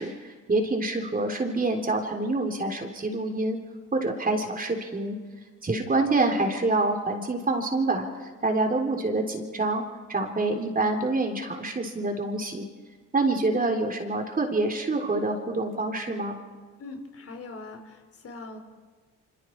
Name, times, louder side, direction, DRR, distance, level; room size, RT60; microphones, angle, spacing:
voice 1, 0.0-3.6 3.9-5.2 5.6-9.8 10.1-12.7 13.1-16.4, right 2 dB, 30° right, 3 dB, 3.6 m, -26 dB
voice 2, 16.8-18.6, left 3 dB, 50° left, 5 dB, 3.8 m, -41 dB
27.0 x 26.0 x 4.7 m, 1.5 s
cardioid pair, 90°, 30 cm